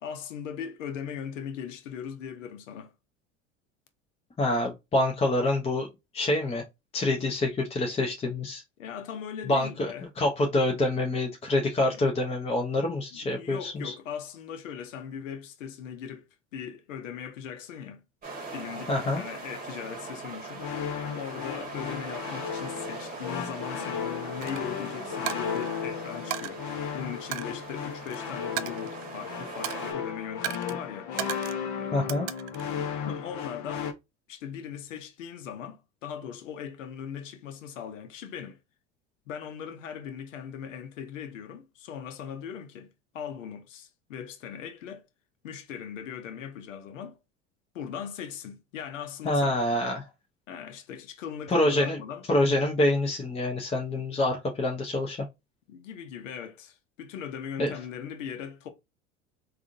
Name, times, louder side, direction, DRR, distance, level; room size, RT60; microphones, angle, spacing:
voice 1, 0.0-2.9 8.8-10.1 11.8-12.0 13.1-16.3 16.5-18.0 18.5-20.7 21.1-26.6 26.9-31.1 31.7-32.3 33.1-33.9 34.3-38.6 39.3-42.9 43.1-45.0 45.4-47.2 47.7-49.5 50.5-52.2 55.7-58.7, left 8 dB, 80° left, 0.7 m, -39 dB
voice 2, 4.4-5.9 6.1-6.6 6.9-8.6 9.5-13.9 18.9-19.2 31.9-32.3 49.2-50.1 51.5-52.0 52.3-55.2 57.6-57.7, left 1 dB, 15° left, 0.7 m, -26 dB
sound 1, 18.2-29.9, right 3 dB, 20° right, 1.2 m, -41 dB
sound 2, 20.6-33.9, left 7 dB, 50° left, 0.8 m, -35 dB
Coin (dropping), 24.4-24.6 25.3-25.8 26.3-26.5 27.3-28.2 28.6-29.2 29.6-30.0 30.4-30.8 31.2-31.6 32.1-32.7, right 14 dB, 55° right, 0.4 m, -35 dB
3.6 x 2.4 x 2.5 m
hypercardioid pair, 85°, 38 cm